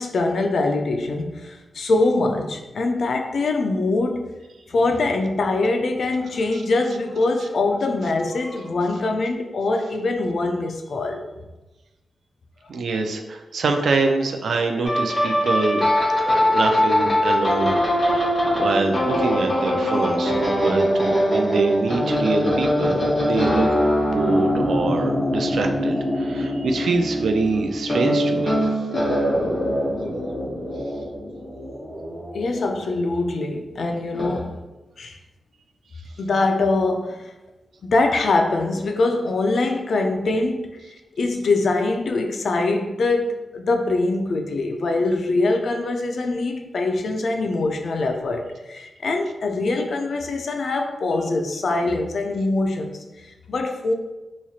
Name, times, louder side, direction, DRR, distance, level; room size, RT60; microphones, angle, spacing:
voice 1, 0.0-4.3 4.7-11.2 32.3-34.6 35.0-35.2 36.2-37.3 37.8-40.7 41.2-53.9, left 2 dB, 70° left, 4 dB, 0.4 m, -23 dB
voice 2, 12.7-15.8 16.2-23.7 24.0-28.6, right 3 dB, 85° right, 4 dB, 0.4 m, -25 dB
sound 1, 14.8-33.3 34.1-34.4, equal, 35° left, 1.1 m, -22 dB
3.1 x 2.4 x 4.1 m, 1.1 s
wide cardioid pair, 125°, 0 cm